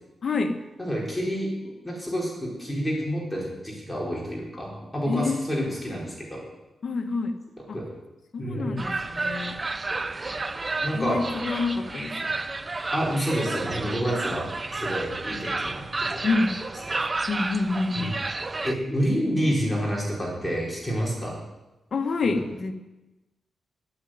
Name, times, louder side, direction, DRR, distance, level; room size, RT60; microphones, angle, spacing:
voice 1, 0.2-0.6 5.1-5.7 6.8-7.4 7.7-7.8 8.3-9.6 10.9-12.3 16.2-16.5 17.3-18.2 21.9-22.7, left 3 dB, 50° left, 5 dB, 1.6 m, -27 dB
voice 2, 0.8-1.5 1.8-6.4 7.7-7.8 8.4-8.8 10.8-11.2 12.9-16.2 16.9-17.0 17.9-18.1 18.6-21.4, equal, 5° left, -4 dB, 4.8 m, -28 dB
sound 1, 8.8-18.7, right 3 dB, 25° right, 0.7 m, -31 dB
11.0 x 9.7 x 9.5 m, 1.0 s
wide cardioid pair, 115°, 0 cm